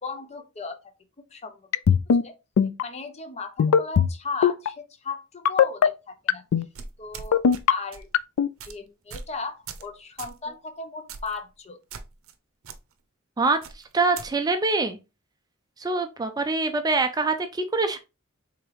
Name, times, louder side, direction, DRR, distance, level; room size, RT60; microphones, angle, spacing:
voice 1, 0.0-0.8 1.3-1.7 2.2-2.3 2.8-6.4 7.0-7.4 7.7-8.1 8.6-11.8, left 4 dB, 30° left, 0.7 m, -36 dB
sound 1, 1.7-2.2 2.6-2.8 3.6-4.1 4.4-4.7 5.5-5.9 6.3-6.7 7.3-7.7 8.1-8.5, left 7 dB, 90° left, 0.3 m, -18 dB
sound 2, 6.7-7.6 7.9-8.1 8.6-8.7 9.1-9.3 9.7-9.9 10.2-10.4 11.1-11.4 11.9-12.3 12.6-12.8 13.6-14.3, right 5 dB, 70° right, 0.6 m, -40 dB
voice 2, 13.4-15.0 15.8-18.0, right 3 dB, 20° right, 0.4 m, -25 dB
4.6 x 3.5 x 3.3 m
head